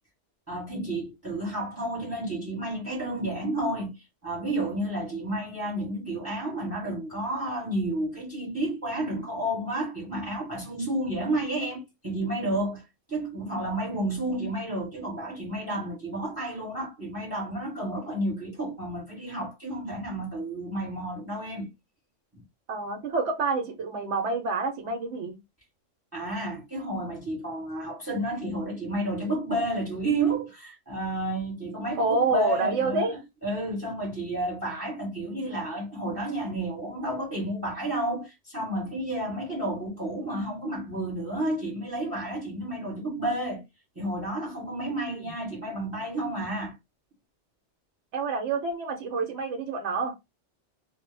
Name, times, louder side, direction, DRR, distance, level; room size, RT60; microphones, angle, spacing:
voice 1, 0.5-21.7 22.3-22.4 26.1-43.6 43.9-46.7, right 1 dB, 15° right, 0.9 m, -31 dB
voice 2, 22.7-25.4 32.0-33.1 44.8-45.3 48.1-50.1, right 3 dB, 75° right, 0.9 m, -28 dB
2.1 x 2.1 x 3.1 m
omnidirectional pair, 1.2 m